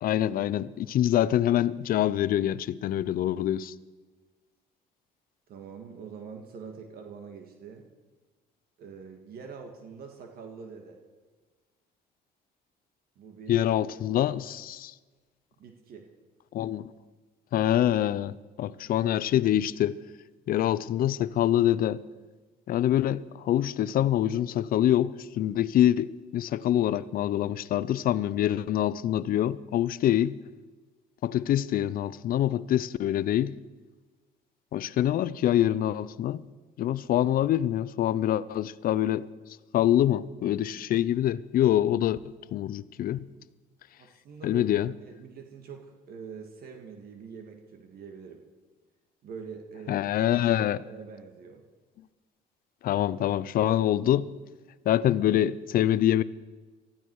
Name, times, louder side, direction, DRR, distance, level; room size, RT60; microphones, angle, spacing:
voice 1, 0.0-3.7 13.5-14.9 16.5-16.9 17.5-20.0 20.5-22.0 22.7-30.4 31.2-33.5 34.7-36.4 36.8-39.3 39.7-42.2 42.5-43.3 44.4-44.9 49.9-50.8 52.8-54.3 54.9-56.2, left 12 dB, 60° left, 0.6 m, -25 dB
voice 2, 5.5-7.9 8.8-11.0 13.2-13.6 13.9-14.0 15.6-16.1 44.0-44.6 45.0-48.4 49.2-50.1 50.9-51.6, right 6 dB, 65° right, 1.9 m, -44 dB
19.5 x 14.0 x 4.8 m
cardioid pair, 110°, 17 cm